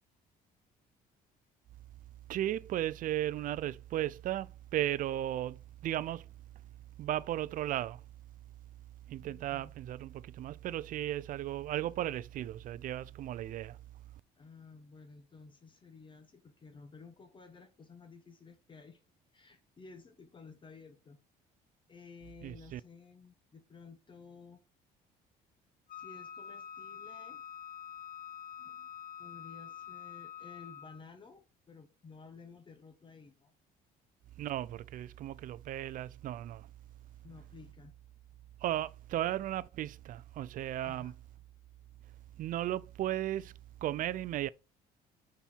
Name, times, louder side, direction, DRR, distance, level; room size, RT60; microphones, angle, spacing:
voice 1, 2.3-6.3 7.0-8.0 9.1-13.8 22.4-22.8 34.4-36.7 38.6-41.1 42.4-43.5 43.8-44.5, right 13 dB, 55° right, 0.4 m, -35 dB
voice 2, 9.2-9.8 14.4-19.0 19.3-21.2 21.9-24.6 25.9-27.4 28.6-28.9 29.2-33.5 37.2-37.9 40.8-41.1, left 4 dB, 30° left, 0.9 m, -54 dB
Wind instrument woodwind instrument, 25.9-31.1, left 8 dB, 55° left, 0.7 m, -46 dB
5.5 x 4.3 x 4.4 m
cardioid pair, 110°, 17 cm